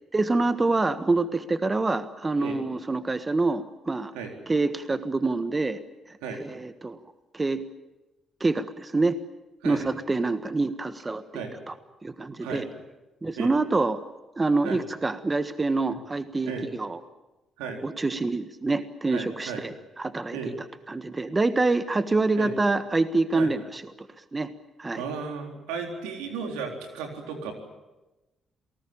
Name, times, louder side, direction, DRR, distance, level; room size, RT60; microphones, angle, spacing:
voice 1, 0.1-4.1 4.5-5.8 6.1-7.0 7.3-7.6 8.4-9.2 9.6-11.7 12.0-12.6 13.2-14.0 14.4-17.0 17.8-20.4 20.9-24.1 24.3-24.5 24.8-25.0, right 3 dB, 25° right, 11 dB, 1.5 m, -26 dB
voice 2, 19.1-19.6 20.3-20.5 22.4-22.5 23.3-23.5 24.9-27.5, right 5 dB, 90° right, 3 dB, 4.0 m, -34 dB
27.5 x 19.0 x 8.8 m, 1.1 s
supercardioid pair, 55°, 0 cm